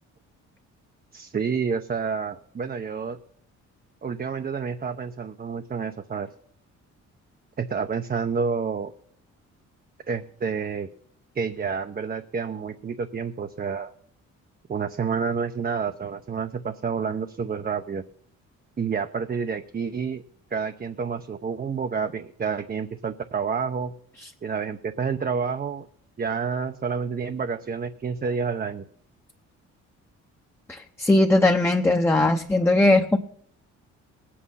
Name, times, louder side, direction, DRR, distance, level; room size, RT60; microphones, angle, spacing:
voice 1, 1.1-3.2 4.0-6.3 7.6-8.9 10.1-10.9 11.3-13.9 14.7-18.0 18.8-20.2 20.5-23.9 24.4-25.9 26.2-28.8, right 6 dB, 30° right, 8 dB, 0.7 m, -29 dB
voice 2, 30.7-33.2, left 2 dB, 10° left, 4 dB, 0.8 m, -19 dB
19.0 x 8.6 x 5.6 m, 0.65 s
cardioid pair, 90°, 30 cm